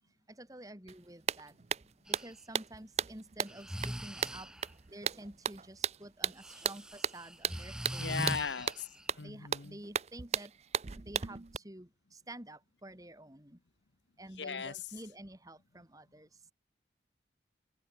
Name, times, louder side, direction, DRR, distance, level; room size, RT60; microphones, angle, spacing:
voice 1, 0.3-1.5 1.8-4.5 4.9-8.2 9.2-10.5 11.0-13.6 14.2-16.3, right 1 dB, 20° right, 2.6 m, -50 dB
sound 1, 0.9-1.0 1.3-11.6, right 7 dB, 35° right, 0.5 m, -36 dB
Breathing, 2.1-2.3 3.5-4.7 6.4-9.1, equal, 5° right, 1.0 m, -41 dB
voice 2, 8.0-9.8 14.4-14.9, left 6 dB, 90° left, 1.0 m, -38 dB
head